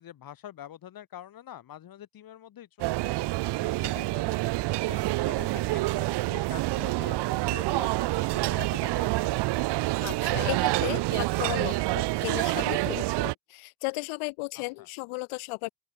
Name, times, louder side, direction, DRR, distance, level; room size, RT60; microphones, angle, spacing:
voice 1, 0.0-3.1 3.6-4.4 4.9-9.7 14.5-14.9, left 11 dB, 45° left, 1.2 m, -46 dB
sound 1, 2.8-13.3, right 19 dB, 55° right, 0.5 m, -27 dB
sound 2, 4.5-12.1, right 27 dB, 90° right, 4.1 m, -45 dB
voice 2, 10.0-15.7, left 26 dB, 80° left, 0.6 m, -35 dB
open air
supercardioid pair, 85°, 50 cm